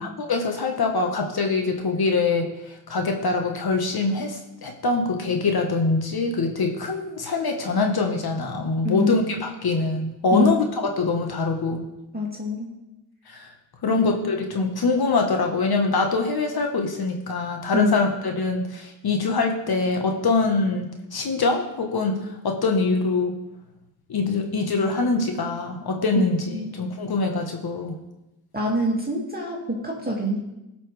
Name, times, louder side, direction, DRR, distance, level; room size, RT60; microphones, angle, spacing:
voice 1, 0.0-11.9 13.3-13.5 13.8-23.4 24.1-26.4 26.7-28.0, left 3 dB, 55° left, 3 dB, 1.5 m, -24 dB
voice 2, 8.8-9.2 10.3-10.5 12.1-12.7 13.8-14.0 17.7-17.9 26.2-26.3 26.5-26.8 28.5-30.4, left 1 dB, 20° right, -2 dB, 2.3 m, -25 dB
16.5 x 6.0 x 3.4 m, 0.95 s
cardioid pair, 60°, 44 cm